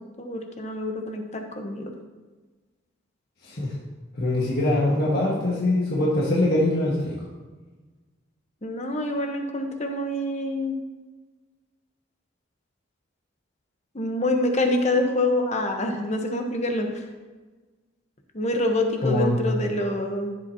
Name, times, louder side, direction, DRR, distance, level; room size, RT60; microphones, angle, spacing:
voice 1, 0.0-1.9 8.6-10.8 13.9-17.1 18.3-20.3, left 1 dB, 35° left, 3 dB, 1.1 m, -26 dB
voice 2, 4.1-7.2 19.0-19.4, left 1 dB, 50° left, -6 dB, 1.7 m, -23 dB
13.5 x 7.6 x 2.9 m, 1.3 s
head